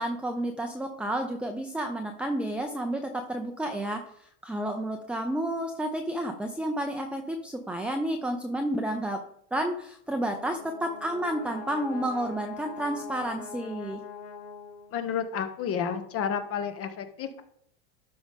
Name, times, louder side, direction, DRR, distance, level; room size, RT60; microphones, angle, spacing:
voice 1, 0.0-9.2 9.5-14.0, right 1 dB, 5° right, 3 dB, 0.7 m, -31 dB
Brass instrument, 10.1-15.2, left 5 dB, 75° left, 1.6 m, -43 dB
voice 2, 14.9-17.4, left 7 dB, 40° left, 8 dB, 1.3 m, -31 dB
12.0 x 5.2 x 3.7 m, 0.69 s
supercardioid pair, 120°, 34 cm